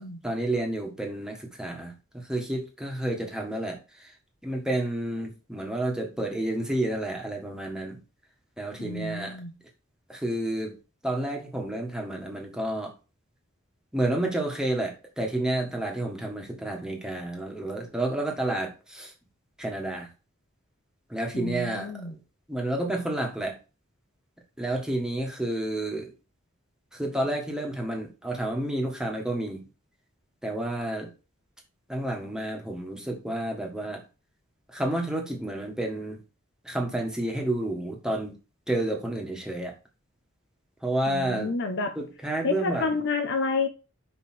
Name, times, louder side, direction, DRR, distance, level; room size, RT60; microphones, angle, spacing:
voice 1, 0.2-4.1 4.4-8.0 8.6-9.4 10.1-10.8 11.0-12.9 13.9-19.1 19.6-20.1 21.1-22.2 22.5-23.6 24.6-26.1 26.9-29.7 30.4-31.1 31.9-34.0 34.7-36.2 36.6-38.4 38.7-39.7 40.8-41.5 41.9-42.9, right 1 dB, 5° right, 0 dB, 1.6 m, -30 dB
voice 2, 8.8-9.5 21.3-22.1 41.1-42.0 42.4-43.7, left 4 dB, 60° left, 6 dB, 1.0 m, -29 dB
5.5 x 5.2 x 4.3 m, 0.31 s
head